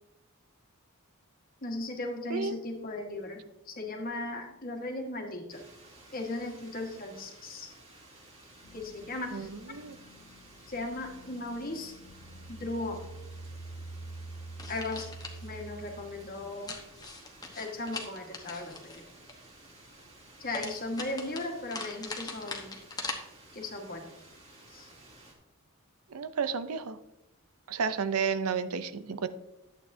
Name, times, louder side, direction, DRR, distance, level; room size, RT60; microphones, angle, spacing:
voice 1, 1.6-5.7 6.1-7.7 8.7-9.5 10.7-12.0 12.5-13.1 14.7-15.1 15.4-16.7 17.6-19.0 20.4-22.8 23.5-24.1 24.7-24.9, left 2 dB, 40° left, 3 dB, 1.5 m, -37 dB
sound 1, 5.5-25.3, right 2 dB, 30° right, 2.1 m, -55 dB
sound 2, 8.6-16.4, right 2 dB, 65° left, 0.6 m, -47 dB
voice 2, 9.3-10.0 26.1-27.0 27.7-29.3, right 6 dB, 85° right, 12 dB, 0.6 m, -32 dB
sound 3, 14.6-15.4 16.7-19.3 20.5-23.1, left 3 dB, 20° left, 1.0 m, -41 dB
11.0 x 8.4 x 2.7 m, 0.90 s
head